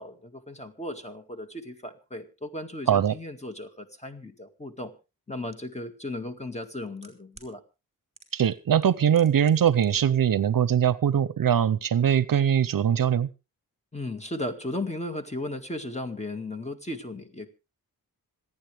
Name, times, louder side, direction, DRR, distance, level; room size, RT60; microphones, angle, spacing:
voice 1, 0.0-4.9 5.3-7.6 13.9-17.5, left 1 dB, 20° left, 7 dB, 2.0 m, -36 dB
sound 1, 5.5-5.6 6.5-7.5 8.1-8.5 8.8-9.9 10.1-10.2, right 2 dB, 20° right, 4.6 m, -52 dB
voice 2, 8.3-13.3, right 9 dB, 65° right, 18 dB, 0.7 m, -22 dB
26.5 x 9.7 x 3.4 m, 0.30 s
wide cardioid pair, 80°, 36 cm